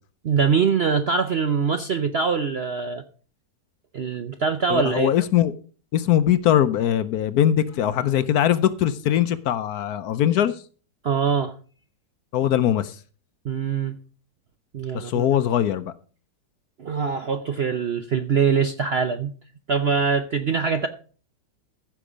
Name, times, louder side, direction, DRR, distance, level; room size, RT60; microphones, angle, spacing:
voice 1, 0.2-3.0 3.9-5.1 11.0-11.6 13.4-13.9 14.7-15.3 16.8-19.3 19.7-20.9, right 6 dB, 60° right, 0.6 m, -23 dB
voice 2, 4.7-5.5 5.9-10.6 12.3-13.0 14.9-15.9, left 10 dB, 70° left, 1.1 m, -21 dB
15.0 x 6.2 x 5.0 m
omnidirectional pair, 1.9 m